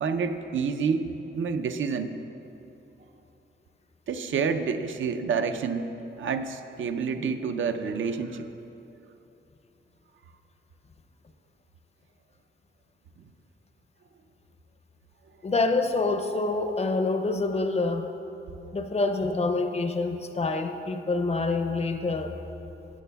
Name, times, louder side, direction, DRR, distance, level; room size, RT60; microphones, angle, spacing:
voice 1, 0.0-2.1 4.1-5.9 6.2-8.5, right 5 dB, 75° right, 8 dB, 0.5 m, -28 dB
voice 2, 15.4-18.1 18.7-22.4, left 3 dB, 30° left, 6 dB, 0.5 m, -26 dB
13.5 x 8.2 x 2.3 m, 3.0 s
wide cardioid pair, 125°, 21 cm